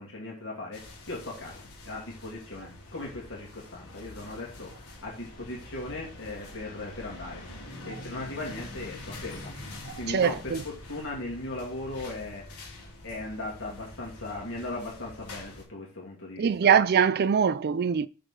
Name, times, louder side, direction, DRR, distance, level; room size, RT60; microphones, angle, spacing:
voice 1, 0.0-7.4 7.8-12.4 13.0-16.7, left 2 dB, 60° left, 2.5 m, -38 dB
sound 1, 0.7-15.6, left 2 dB, 90° left, 2.6 m, -45 dB
voice 2, 9.9-10.6 16.4-18.1, right 7 dB, 45° right, 0.4 m, -23 dB
6.4 x 4.9 x 3.8 m
head